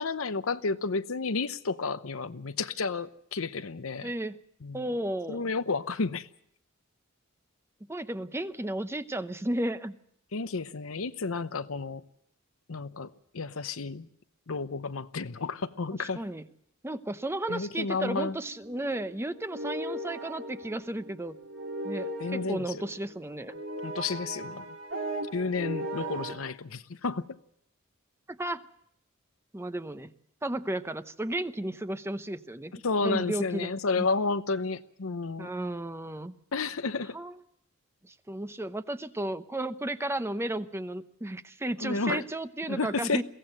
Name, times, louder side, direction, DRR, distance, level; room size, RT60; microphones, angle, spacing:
voice 1, 0.0-4.1 4.6-4.8 5.3-6.3 10.3-12.0 12.7-14.1 14.5-16.2 17.5-18.3 22.2-22.8 23.8-24.6 25.3-27.2 32.8-35.5 36.5-37.2 41.8-42.2 42.7-43.2, left 4 dB, 90° left, 0.8 m, -31 dB
voice 2, 4.0-4.4 4.7-5.5 7.9-9.9 15.9-16.5 16.8-21.4 21.8-23.6 26.0-26.1 28.3-28.6 29.5-30.1 30.4-33.7 33.9-34.1 35.4-36.3 37.1-37.4 38.3-43.2, right 1 dB, 10° right, 0.7 m, -33 dB
sound 1, 18.3-26.3, right 1 dB, 65° right, 3.1 m, -38 dB
22.5 x 16.5 x 7.7 m
head